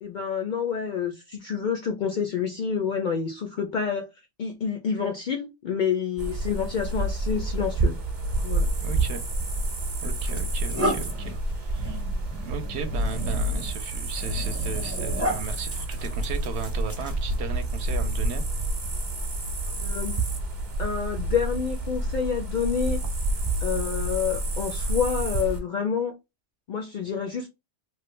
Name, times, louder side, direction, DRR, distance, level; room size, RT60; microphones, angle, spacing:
voice 1, 0.0-4.1 4.4-8.0 8.4-8.7 19.7-20.2 20.8-23.0 23.6-26.1 26.7-27.5, left 7 dB, 60° left, 0.5 m, -28 dB
sound 1, 6.2-25.6, right 2 dB, 45° right, 0.9 m, -29 dB
voice 2, 8.8-9.2 10.0-12.0 12.4-18.4, right 7 dB, 70° right, 0.8 m, -36 dB
sound 2, 9.4-9.6 10.2-17.6, equal, 15° right, 0.6 m, -34 dB
3.1 x 2.2 x 3.1 m
omnidirectional pair, 1.2 m